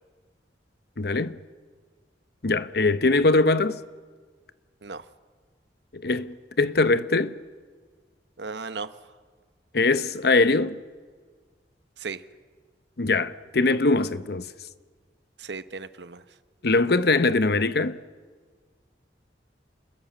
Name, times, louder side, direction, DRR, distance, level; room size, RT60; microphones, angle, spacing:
voice 1, 1.0-1.4 2.4-3.8 5.9-7.4 9.7-10.8 13.0-14.5 16.6-18.0, left 3 dB, 65° left, 0.9 m, -22 dB
voice 2, 8.4-8.9 12.0-12.2 15.4-16.2, right 4 dB, 75° right, 1.1 m, -35 dB
27.5 x 21.0 x 7.3 m
head